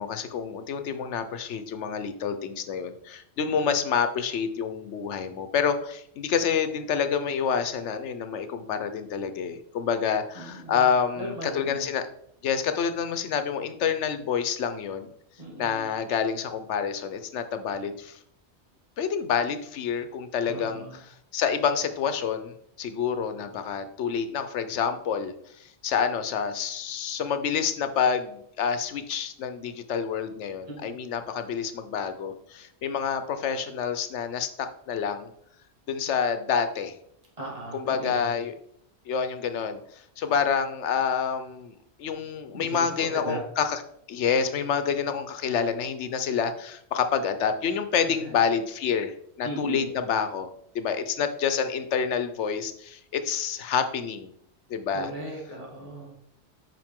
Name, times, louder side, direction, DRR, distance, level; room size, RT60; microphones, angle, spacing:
voice 1, 0.0-12.1 12.4-15.1 15.6-18.2 19.0-25.3 25.6-35.3 35.9-36.9 37.7-38.5 39.1-43.8 44.1-50.5 50.7-54.3 54.7-55.1, left 7 dB, 85° left, 9 dB, 1.1 m, -28 dB
voice 2, 10.4-10.9 11.2-11.9 15.4-15.9 20.5-21.0 30.7-30.9 37.4-38.3 42.5-43.4 48.0-48.4 49.4-49.9 54.9-56.2, right 1 dB, 30° right, -3 dB, 2.2 m, -37 dB
7.7 x 5.6 x 3.6 m, 0.70 s
omnidirectional pair, 1.2 m